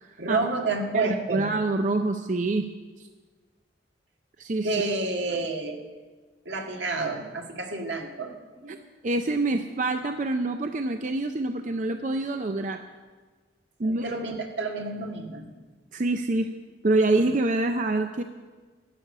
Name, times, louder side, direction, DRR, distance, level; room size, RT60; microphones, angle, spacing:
voice 1, 0.2-1.5 4.6-5.8 6.5-8.8 13.8-15.5, right 3 dB, 80° right, 2 dB, 1.8 m, -30 dB
voice 2, 0.9-2.7 3.0-3.1 4.4-4.7 8.7-8.8 9.0-12.8 13.8-14.0 15.9-16.5 16.8-18.2, right 2 dB, 45° right, 7 dB, 0.5 m, -26 dB
12.0 x 8.1 x 8.6 m, 1.4 s
head